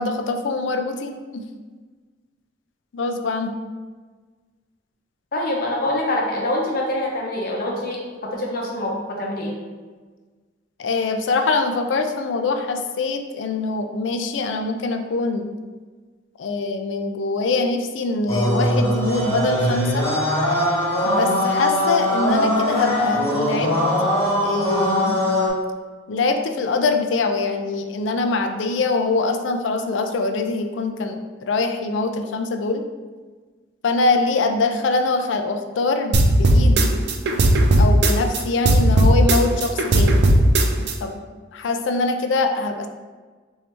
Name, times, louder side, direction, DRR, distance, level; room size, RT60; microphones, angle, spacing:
voice 1, 0.0-1.5 2.9-3.5 10.8-15.5 16.4-20.1 21.0-23.7 24.4-25.2 26.1-32.8 33.8-37.0 37.8-40.2 41.0-41.2 41.5-42.9, left 3 dB, 75° left, 6 dB, 0.4 m, -23 dB
voice 2, 5.3-9.5, left 1 dB, 50° left, -2 dB, 0.7 m, -25 dB
sound 1, 18.3-25.5, left 1 dB, 15° left, 0.9 m, -21 dB
sound 2, 36.1-38.4 38.7-40.9, right 1 dB, 60° right, 0.4 m, -15 dB
3.2 x 2.7 x 4.4 m, 1.4 s
head